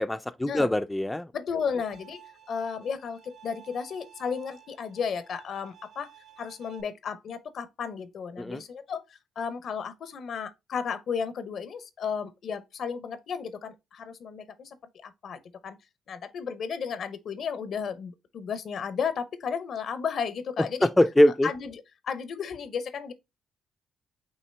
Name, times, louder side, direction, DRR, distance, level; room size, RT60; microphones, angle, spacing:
voice 1, 0.0-1.3 8.4-8.6 20.8-21.5, left 1 dB, 10° left, 0.3 m, -22 dB
voice 2, 1.3-6.1 6.4-14.8 15.0-15.8 16.1-20.9 21.4-21.7 22.0-23.1, left 6 dB, 60° left, 0.7 m, -34 dB
Bowed string instrument, 1.8-6.8, right 10 dB, 60° right, 0.9 m, -53 dB
5.5 x 2.9 x 3.3 m
cardioid pair, 90°, 0 cm